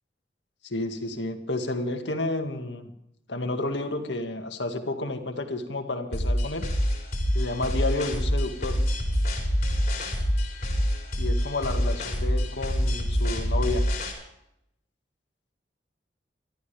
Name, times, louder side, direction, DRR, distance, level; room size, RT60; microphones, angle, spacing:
voice 1, 0.6-2.9 3.3-6.7 7.3-8.8 11.2-13.9, left 2 dB, 85° left, 5 dB, 2.0 m, -31 dB
sound 1, 6.1-14.1, equal, 45° left, 4.6 m, -26 dB
24.0 x 14.0 x 3.5 m, 0.80 s
head